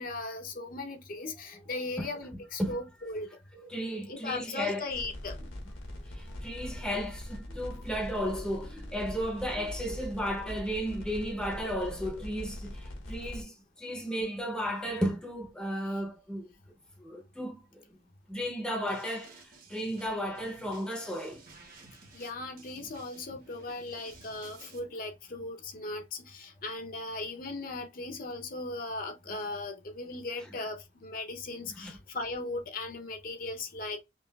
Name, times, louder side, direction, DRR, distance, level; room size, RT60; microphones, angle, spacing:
voice 1, 0.0-3.3 4.1-5.5 22.1-34.0, left 2 dB, 45° left, 0.6 m, -38 dB
voice 2, 3.5-4.9 6.0-16.5 17.0-17.8 18.3-21.4 31.8-32.0, equal, 5° left, 0.6 m, -34 dB
sound 1, 4.9-13.4, left 1 dB, 85° left, 1.2 m, -42 dB
sound 2, 18.9-24.8, right 3 dB, 45° right, 1.1 m, -54 dB
5.4 x 2.4 x 2.3 m
head